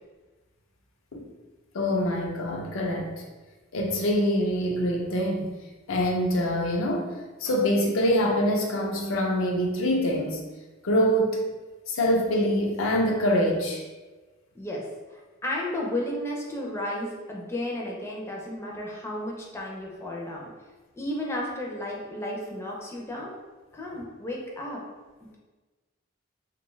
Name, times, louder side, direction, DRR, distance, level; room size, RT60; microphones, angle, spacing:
voice 1, 1.7-3.1 3.7-5.5 5.9-10.4 10.8-11.4 11.9-13.8, equal, 85° left, 0 dB, 0.5 m, -25 dB
voice 2, 14.5-20.5 21.0-23.3 23.7-24.8 25.2-25.4, left 1 dB, 15° left, -3 dB, 0.4 m, -33 dB
2.6 x 2.2 x 3.1 m, 1.3 s
head